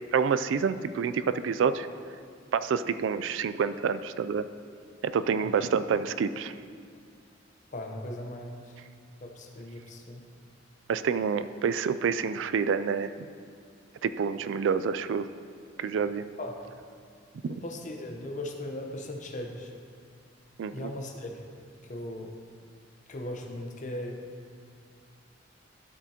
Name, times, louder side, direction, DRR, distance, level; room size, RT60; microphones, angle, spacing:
voice 1, 0.1-1.9 2.5-4.4 5.0-6.5 10.9-13.1 14.0-15.3 15.8-16.3 17.4-17.6 20.6-20.9, right 6 dB, 80° right, 12 dB, 0.3 m, -28 dB
voice 2, 7.7-8.7 9.2-10.2 16.4-16.5 17.5-19.7 20.7-21.4 21.9-22.3 23.1-24.2, left 1 dB, 45° left, 2 dB, 0.8 m, -38 dB
12.5 x 7.3 x 2.9 m, 2.2 s
head